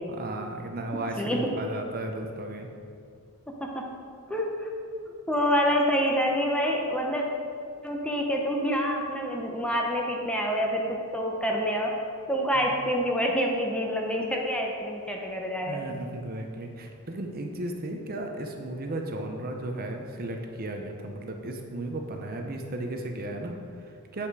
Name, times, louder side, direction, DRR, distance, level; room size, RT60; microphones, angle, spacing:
voice 1, 0.1-2.7 12.5-12.7 15.7-24.3, right 2 dB, 40° right, 3 dB, 0.7 m, -35 dB
voice 2, 1.2-1.5 3.6-3.9 4.3-4.7 5.1-7.2 7.8-11.9 12.3-15.9, equal, 5° left, 0 dB, 0.7 m, -27 dB
8.5 x 5.7 x 4.7 m, 2.4 s
head